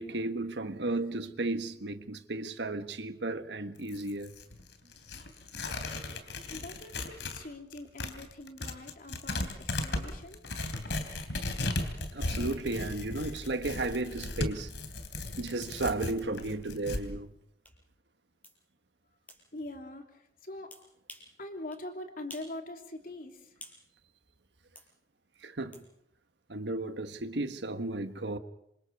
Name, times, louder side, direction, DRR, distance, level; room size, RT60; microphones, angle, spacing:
voice 1, 0.0-4.3 12.1-14.7 15.4-17.3 25.4-25.8 26.5-28.4, right 2 dB, 85° right, 1.4 m, -34 dB
Tearing, 3.8-7.4 7.7-17.0, left 2 dB, 85° left, 3.2 m, -36 dB
voice 2, 6.5-10.4 19.5-20.7 21.4-23.6, left 1 dB, 55° left, 3.1 m, -43 dB
sound 1, 17.6-17.8 18.4-18.6 19.3-19.4 20.7-21.3 21.7-21.8 22.3-22.6 22.9-23.8 24.8-24.9 25.7-25.9, left 1 dB, 10° left, 5.0 m, -50 dB
27.5 x 26.0 x 4.8 m
head